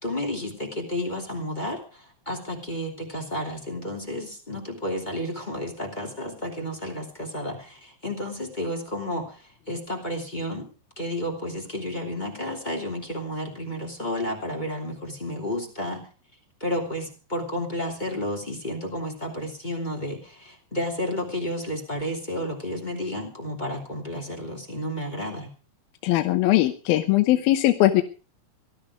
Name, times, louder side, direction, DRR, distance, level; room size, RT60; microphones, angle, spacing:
voice 1, 0.0-10.7 11.0-16.1 16.6-25.5, left 1 dB, 15° left, 3 dB, 2.4 m, -31 dB
voice 2, 26.0-28.0, left 15 dB, 75° left, 8 dB, 2.6 m, -20 dB
19.0 x 12.5 x 4.9 m, 0.36 s
omnidirectional pair, 4.9 m